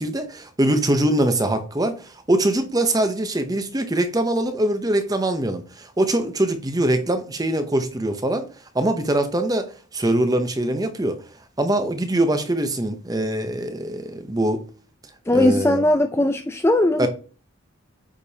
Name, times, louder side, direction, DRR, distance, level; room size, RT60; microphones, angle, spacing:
voice 1, 0.0-8.5 8.7-11.1 11.6-14.6 15.3-15.8 17.0-17.1, right 1 dB, 15° right, 0.7 m, -23 dB
voice 2, 15.3-17.1, left 1 dB, 10° left, 0.4 m, -19 dB
8.5 x 5.2 x 2.8 m
head